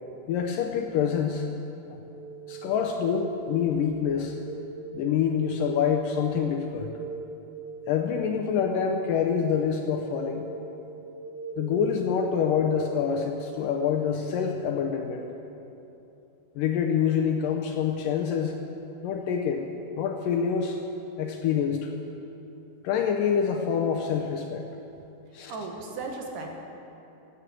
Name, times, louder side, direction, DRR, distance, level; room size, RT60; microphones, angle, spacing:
voice 1, 0.3-1.5 1.9-2.0 2.5-4.4 4.9-6.9 7.9-10.5 11.6-15.3 16.6-18.6 19.0-19.7 20.0-20.8 21.2-21.9 22.8-24.7 25.3-25.6, left 7 dB, 75° left, 3 dB, 2.1 m, -26 dB
sound 1, 2.0-13.2, right 4 dB, 85° right, 1.7 m, -40 dB
voice 2, 25.5-26.5, right 3 dB, 65° right, 1 dB, 2.6 m, -35 dB
14.0 x 9.7 x 7.7 m, 2.9 s
omnidirectional pair, 4.4 m